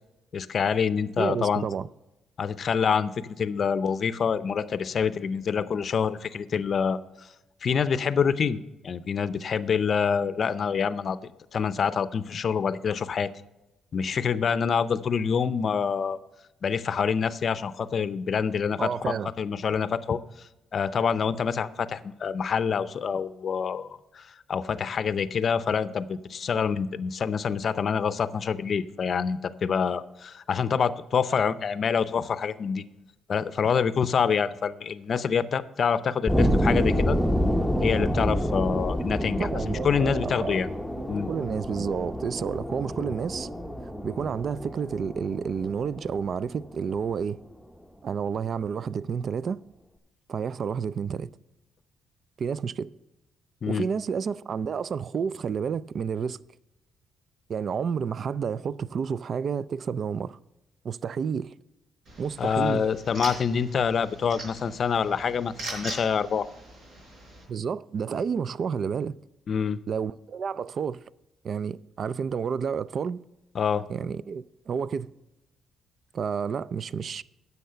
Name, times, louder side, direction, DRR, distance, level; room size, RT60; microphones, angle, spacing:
voice 1, 0.3-1.7 2.4-7.0 7.6-8.6 8.8-11.2 11.5-13.3 13.9-16.2 16.6-32.8 33.3-37.2 37.8-40.7 41.1-41.3 53.6-53.9 62.4-66.5 69.5-69.8 73.5-73.8, left 6 dB, 50° left, 0.5 m, -26 dB
voice 2, 1.2-1.9 18.8-19.3 39.4-40.6 41.0-43.5 44.0-47.4 48.0-49.6 50.3-51.3 52.4-52.9 53.7-56.4 57.5-60.4 60.8-61.5 62.2-62.9 67.5-69.2 69.9-71.0 71.4-73.2 73.9-75.1 76.1-77.2, right 6 dB, 55° right, 0.3 m, -30 dB
sound 1, 36.3-47.0, equal, ahead, 0.8 m, -28 dB
sound 2, 62.0-67.4, right 2 dB, 70° right, 4.5 m, -41 dB
10.5 x 7.1 x 5.6 m
cardioid pair, 90°, 0 cm